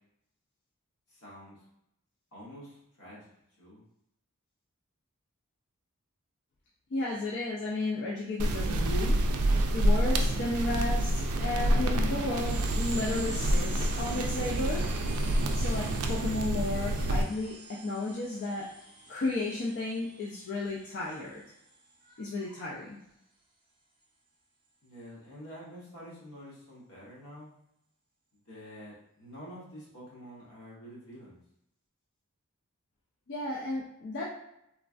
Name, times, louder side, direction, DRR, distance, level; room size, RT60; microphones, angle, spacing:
voice 1, 1.1-1.6 2.3-3.3 3.6-3.8 24.8-27.5 28.5-31.4, equal, 80° left, -7 dB, 1.2 m, -48 dB
voice 2, 6.9-9.2 9.7-14.8 15.5-18.7 19.1-21.4 22.0-23.0 33.3-34.2, left 2 dB, 50° left, -5 dB, 0.4 m, -33 dB
sound 1, 8.4-17.2, right 1 dB, 85° right, 0.4 m, -28 dB
sound 2, 11.9-22.0, right 3 dB, 20° right, 0.4 m, -46 dB
3.1 x 2.2 x 2.5 m, 0.80 s
head